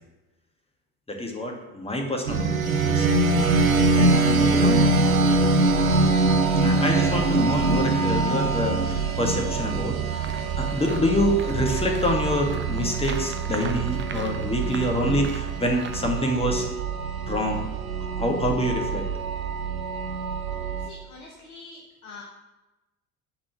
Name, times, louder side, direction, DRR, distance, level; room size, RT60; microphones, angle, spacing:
voice 1, 1.1-3.1 3.9-5.1 6.6-10.3 10.6-16.7 17.3-17.7 18.2-19.1, left 1 dB, 15° left, 2 dB, 1.6 m, -26 dB
sound 1, 2.3-20.9, right 3 dB, 85° right, 0.6 m, -24 dB
sound 2, 10.1-16.0, right 5 dB, 30° right, 0.9 m, -41 dB
voice 2, 20.8-22.2, left 3 dB, 75° left, 0 dB, 1.0 m, -44 dB
8.8 x 4.2 x 5.9 m, 1.1 s
figure-of-eight pair, 55°, 41 cm